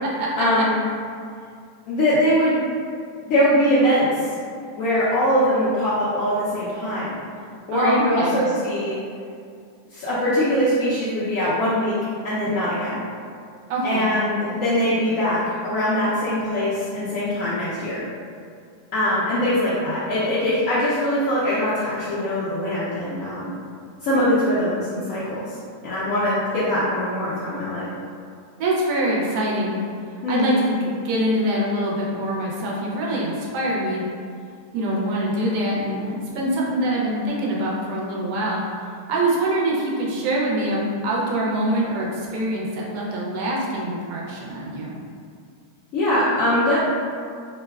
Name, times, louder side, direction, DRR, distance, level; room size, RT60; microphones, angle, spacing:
voice 1, 0.4-0.7 1.9-2.6 3.2-4.3 4.7-7.1 7.7-9.0 9.9-11.9 12.2-13.0 13.8-18.0 18.9-23.5 24.0-25.6 25.8-27.9 30.2-30.5 45.9-46.8, equal, 70° left, -11 dB, 0.8 m, -22 dB
voice 2, 7.7-8.4 13.7-14.1 28.6-29.8 30.3-34.0 34.7-38.6 39.1-45.0, right 1 dB, 70° right, -4 dB, 1.0 m, -24 dB
3.0 x 2.1 x 2.2 m, 2.3 s
omnidirectional pair, 1.8 m